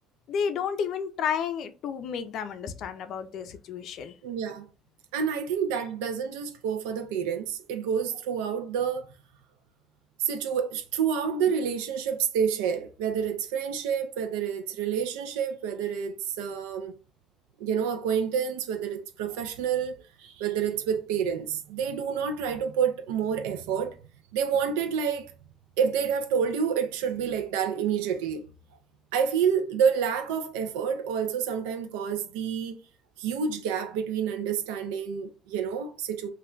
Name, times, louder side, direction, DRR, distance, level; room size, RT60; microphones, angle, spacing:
voice 1, 0.3-4.1, left 7 dB, 60° left, 0.4 m, -31 dB
voice 2, 4.2-4.7 5.1-9.1 10.2-17.0 17.6-24.0 24.3-25.3 25.8-28.4 29.1-32.8 33.2-36.3, right 7 dB, 90° right, 0.4 m, -28 dB
2.2 x 2.2 x 3.6 m
supercardioid pair, 90°, 0 cm